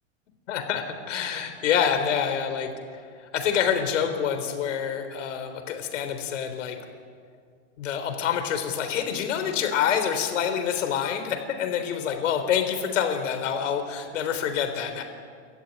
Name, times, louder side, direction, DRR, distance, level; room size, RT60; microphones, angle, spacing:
voice 1, 0.5-2.7 3.3-6.8 7.8-15.0, left 8 dB, 85° left, 6 dB, 4.0 m, -27 dB
30.0 x 14.0 x 9.7 m, 2.1 s
supercardioid pair, 165°, 37 cm